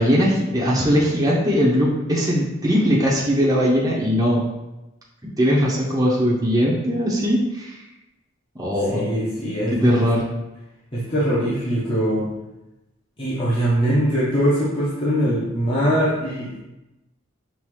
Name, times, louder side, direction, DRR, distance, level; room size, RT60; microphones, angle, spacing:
voice 1, 0.0-4.4 5.2-7.8 8.6-9.1 9.8-10.2, equal, 20° right, -6 dB, 0.8 m, -20 dB
voice 2, 8.9-10.1 10.9-12.3 13.2-16.5, equal, 30° left, -9 dB, 1.0 m, -22 dB
5.5 x 2.6 x 3.1 m, 0.97 s
head